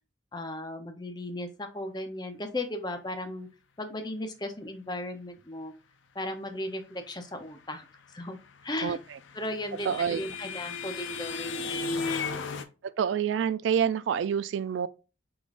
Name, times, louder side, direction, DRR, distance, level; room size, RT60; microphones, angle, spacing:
voice 1, 0.3-3.5 3.8-5.7 6.1-7.9 8.1-8.4 8.6-9.0 9.3-12.2, left 1 dB, 20° left, 0.7 m, -36 dB
sound 1, 8.8-12.6, left 4 dB, 75° left, 0.5 m, -34 dB
voice 2, 9.9-10.2 12.8-14.9, right 8 dB, 70° right, 0.3 m, -27 dB
4.9 x 3.8 x 2.5 m
head